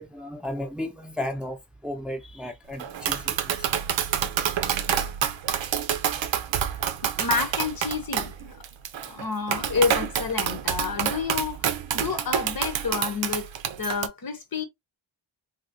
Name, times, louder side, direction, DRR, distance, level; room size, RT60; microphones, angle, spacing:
voice 1, 0.0-1.6 1.8-3.7, left 1 dB, ahead, 0.7 m, -34 dB
Tap, 2.8-14.1, right 9 dB, 70° right, 0.6 m, -28 dB
voice 2, 7.0-8.6 9.1-11.6 11.9-13.5 13.8-14.6, left 5 dB, 45° left, 0.9 m, -29 dB
3.0 x 2.9 x 2.6 m
cardioid pair, 65°, 48 cm